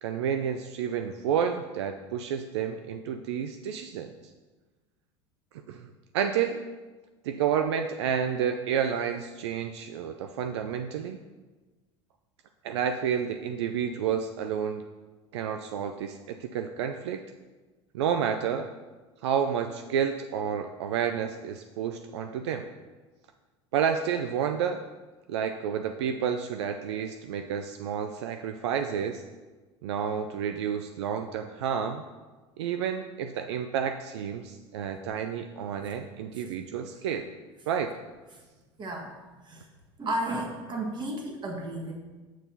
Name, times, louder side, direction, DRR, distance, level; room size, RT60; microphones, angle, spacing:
voice 1, 0.0-4.1 5.7-6.6 7.2-11.2 12.6-14.8 15.3-17.2 17.9-18.7 19.2-22.7 23.7-24.8 25.3-29.2 29.8-32.0 32.6-37.3 37.7-37.9, right 8 dB, 75° right, 6 dB, 0.4 m, -30 dB
voice 2, 38.8-39.1 39.4-39.7 40.0-42.0, right 1 dB, 30° right, 1 dB, 1.5 m, -33 dB
8.0 x 6.9 x 2.8 m, 1.3 s
hypercardioid pair, 80°, 15 cm